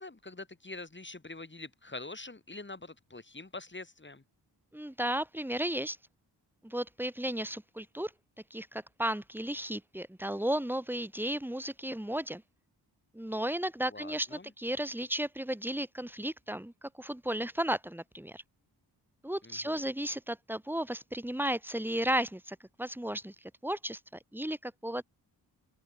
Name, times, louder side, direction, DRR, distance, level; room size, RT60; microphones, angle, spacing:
voice 1, 0.0-4.2 13.9-14.5 19.4-19.8, left 2 dB, 25° left, 7.0 m, -45 dB
voice 2, 4.7-6.0 6.6-8.1 8.5-12.4 13.1-18.4 19.2-24.0 24.3-25.0, right 1 dB, 5° right, 1.5 m, -34 dB
open air
cardioid pair, 75°, 42 cm